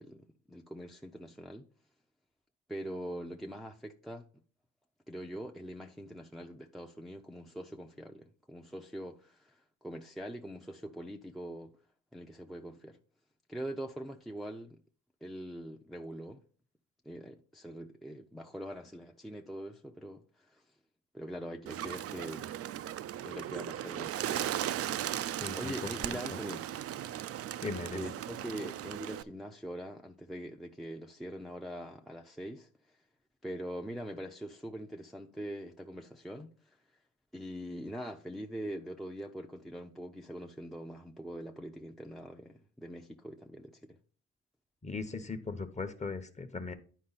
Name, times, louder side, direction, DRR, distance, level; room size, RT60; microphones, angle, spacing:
voice 1, 0.0-1.7 2.7-4.4 5.1-11.8 12.1-13.0 13.5-14.8 15.2-16.4 17.0-20.6 21.1-22.6 23.2-24.5 25.5-26.7 27.9-33.0 33.4-36.8 37.3-44.0, equal, ahead, 0.6 m, -43 dB
Bird, 21.7-29.2, right 11 dB, 50° right, 0.4 m, -37 dB
voice 2, 25.4-25.7 27.6-28.1 44.8-46.7, left 4 dB, 25° left, 1.0 m, -38 dB
10.0 x 4.7 x 4.1 m
cardioid pair, 90°, 30 cm